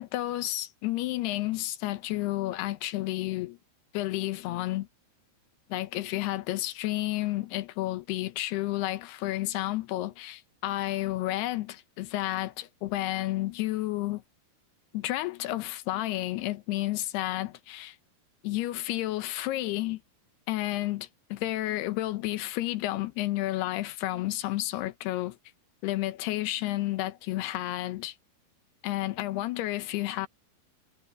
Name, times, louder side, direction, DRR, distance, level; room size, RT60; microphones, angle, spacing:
voice 1, 0.0-3.6 3.9-4.9 5.7-14.2 14.9-18.0 18.4-20.0 20.5-25.4 25.8-28.1 28.8-30.3, left 16 dB, 85° left, 3.0 m, -31 dB
omnidirectional pair, 4.6 m